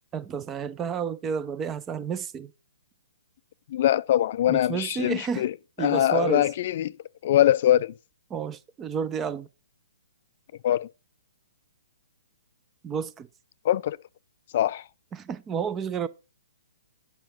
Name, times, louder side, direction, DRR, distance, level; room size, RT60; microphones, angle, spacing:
voice 1, 0.1-2.5 4.5-5.4 5.8-6.5 8.3-9.5 12.8-13.3 15.1-16.1, right 7 dB, 20° right, 0.6 m, -31 dB
voice 2, 3.7-5.5 5.8-6.9 7.2-7.9 10.6-10.9 13.6-14.0 14.5-14.8, left 12 dB, 50° left, 0.4 m, -22 dB
8.8 x 5.8 x 5.8 m
hypercardioid pair, 130°, 0 cm